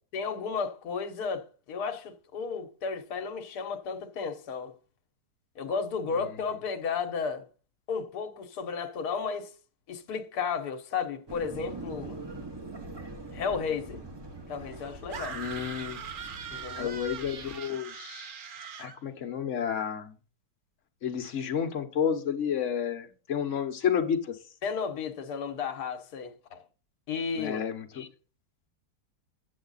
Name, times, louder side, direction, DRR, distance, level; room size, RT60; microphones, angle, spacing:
voice 1, 0.1-4.7 5.6-7.5 7.9-9.5 9.9-12.2 13.3-14.0 14.5-15.4 16.5-17.0 24.6-26.6 27.1-27.6, left 5 dB, 65° left, 1.4 m, -33 dB
sound 1, 11.3-17.6, right 2 dB, 20° right, 0.7 m, -43 dB
sound 2, 15.1-19.0, right 7 dB, 60° right, 0.5 m, -41 dB
voice 2, 15.3-16.0 16.8-18.3 18.8-20.1 21.0-24.4 27.4-28.1, left 8 dB, 50° left, 1.2 m, -31 dB
8.8 x 7.2 x 4.0 m
omnidirectional pair, 1.8 m